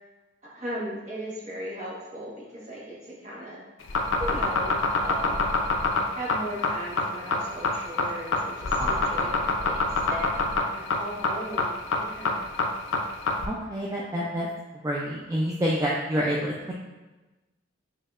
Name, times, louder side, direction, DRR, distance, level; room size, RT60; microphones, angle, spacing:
voice 1, 0.5-3.6 4.2-5.5 6.1-10.3 10.7-12.5, equal, 40° right, -6 dB, 1.2 m, -37 dB
sound 1, 3.8-13.5, left 3 dB, 75° left, 0.4 m, -25 dB
voice 2, 13.5-14.5 14.8-16.7, equal, 15° right, -4 dB, 0.3 m, -28 dB
5.2 x 2.7 x 2.4 m, 1.1 s
head